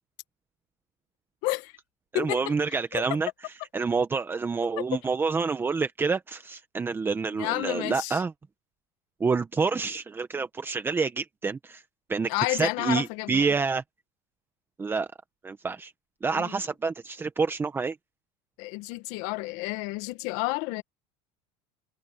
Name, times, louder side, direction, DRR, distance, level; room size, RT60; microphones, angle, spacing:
voice 1, 2.1-8.3 9.2-11.8 12.1-13.8 14.8-15.1 15.4-15.9 16.2-18.0, right 4 dB, 15° right, 1.2 m, -28 dB
voice 2, 7.4-8.2 12.3-13.4 16.4-16.5 18.6-20.8, left 22 dB, 65° left, 1.9 m, -30 dB
supercardioid pair, 125°, 13 cm